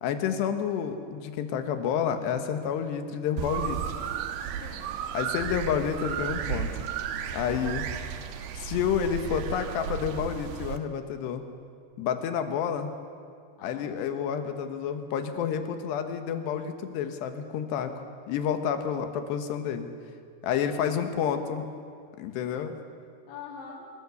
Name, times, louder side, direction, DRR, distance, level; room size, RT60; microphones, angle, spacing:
voice 1, 0.0-3.9 5.2-6.7 7.3-7.9 8.6-11.4 12.0-12.9 13.6-17.9 18.3-19.9 20.4-21.7 22.2-22.7, left 8 dB, 85° left, 7 dB, 3.5 m, -29 dB
sound 1, 3.4-10.8, right 9 dB, 75° right, 3.0 m, -33 dB
voice 2, 4.4-4.9 7.4-7.8 13.6-13.9 20.6-21.5 23.3-23.9, left 5 dB, 50° left, 0 dB, 3.9 m, -46 dB
24.5 x 22.5 x 7.0 m, 2.3 s
omnidirectional pair, 4.8 m